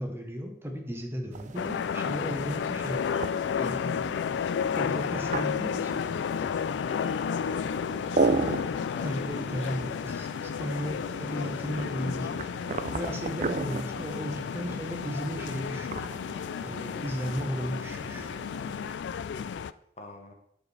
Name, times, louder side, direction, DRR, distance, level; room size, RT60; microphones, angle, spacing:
voice 1, 0.0-3.0 3.6-4.1 4.7-6.0 9.0-12.4 12.9-16.0 16.6-18.4, equal, 15° right, 3 dB, 0.9 m, -35 dB
sound 1, 1.3-19.0, right 4 dB, 45° right, 0.4 m, -36 dB
sound 2, 1.6-19.7, left 7 dB, 85° left, 0.3 m, -32 dB
voice 2, 7.6-9.9 20.0-20.3, left 2 dB, 40° left, 3 dB, 1.1 m, -46 dB
11.5 x 5.1 x 3.3 m, 0.72 s
head